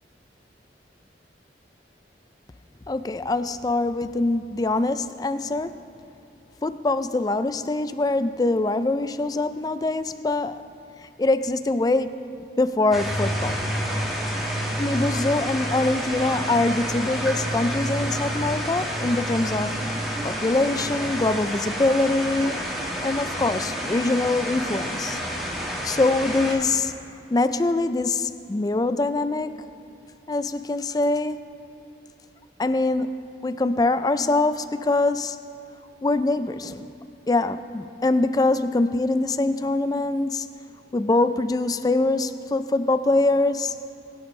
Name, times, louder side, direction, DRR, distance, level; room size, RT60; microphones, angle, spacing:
voice 1, 2.9-5.8 6.6-10.6 11.2-12.3 12.6-13.6 14.8-19.8 20.2-25.2 25.8-27.0 27.3-29.7 30.3-31.4 32.6-35.4 36.0-36.9 37.3-40.5 40.9-43.7, left 2 dB, 20° left, 12 dB, 0.3 m, -24 dB
sound 1, 12.9-26.5, equal, ahead, 1.7 m, -29 dB
22.5 x 10.0 x 3.2 m, 2.5 s
head